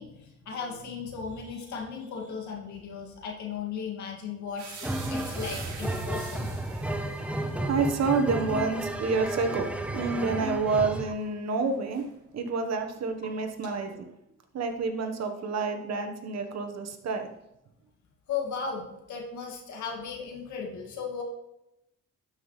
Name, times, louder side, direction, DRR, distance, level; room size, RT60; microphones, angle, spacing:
voice 1, 0.0-6.7 18.3-21.2, left 6 dB, 70° left, 0 dB, 2.3 m, -36 dB
sound 1, 4.6-12.5 12.8-14.0, right 5 dB, 80° right, 2.0 m, -47 dB
sound 2, 4.8-11.1, right 1 dB, 5° right, 0.8 m, -32 dB
voice 2, 6.7-12.1 12.3-14.0 14.5-17.3, right 4 dB, 60° right, 5 dB, 1.3 m, -29 dB
sound 3, 10.2-10.4 11.1-11.3 13.2-13.4 13.7-14.0, equal, 35° left, 3.1 m, -50 dB
12.5 x 5.8 x 3.2 m, 0.86 s
cardioid pair, 90°, 30 cm